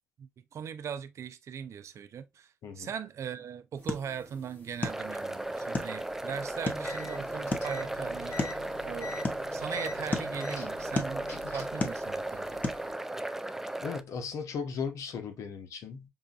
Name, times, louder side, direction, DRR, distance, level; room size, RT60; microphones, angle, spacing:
voice 1, 0.2-8.4 8.8-9.1 9.5-12.6, right 7 dB, 65° right, 0.5 m, -39 dB
sound 1, 3.8-12.9, left 3 dB, 35° left, 0.9 m, -38 dB
sound 2, 4.8-14.0, right 1 dB, 5° right, 0.4 m, -36 dB
sound 3, 6.7-11.9, left 4 dB, 60° left, 1.9 m, -45 dB
voice 2, 13.8-16.1, left 6 dB, 80° left, 0.8 m, -37 dB
5.5 x 2.5 x 2.3 m
cardioid pair, 75°, 5 cm